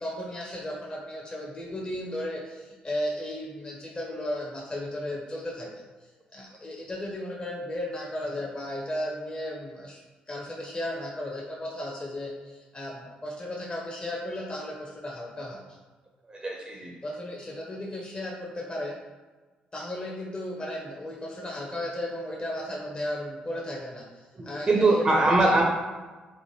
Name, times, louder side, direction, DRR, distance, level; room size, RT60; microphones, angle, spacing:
voice 1, 0.0-5.7 6.3-10.0 10.3-15.6 17.0-19.0 19.7-25.6, left 1 dB, 25° left, -3 dB, 0.5 m, -35 dB
voice 2, 16.3-16.9 24.4-25.6, right 2 dB, 25° right, 0 dB, 0.4 m, -22 dB
2.9 x 2.1 x 3.0 m, 1.3 s
figure-of-eight pair, 40°, 4 cm